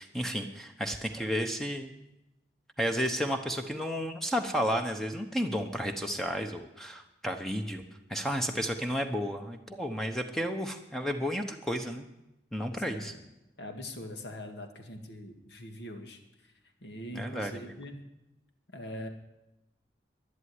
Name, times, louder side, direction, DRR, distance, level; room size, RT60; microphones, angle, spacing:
voice 1, 0.0-1.9 2.8-7.8 8.1-12.1 12.5-13.1 17.1-17.7, equal, ahead, 5 dB, 0.9 m, -32 dB
voice 2, 12.7-13.2 13.6-16.2 16.8-18.0 18.7-19.1, left 1 dB, 70° left, 5 dB, 2.0 m, -42 dB
11.5 x 11.0 x 9.6 m, 0.94 s
head